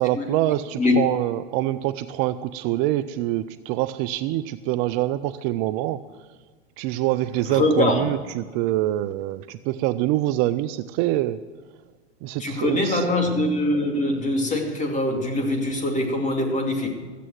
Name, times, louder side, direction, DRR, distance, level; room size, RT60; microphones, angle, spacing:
voice 1, 0.0-6.0 6.8-11.4 12.2-13.1, right 15 dB, 45° right, 13 dB, 0.5 m, -25 dB
voice 2, 7.5-8.1 12.4-16.9, left 2 dB, 20° left, 2 dB, 2.6 m, -23 dB
14.0 x 8.4 x 7.7 m, 1.4 s
hypercardioid pair, 110°, 34 cm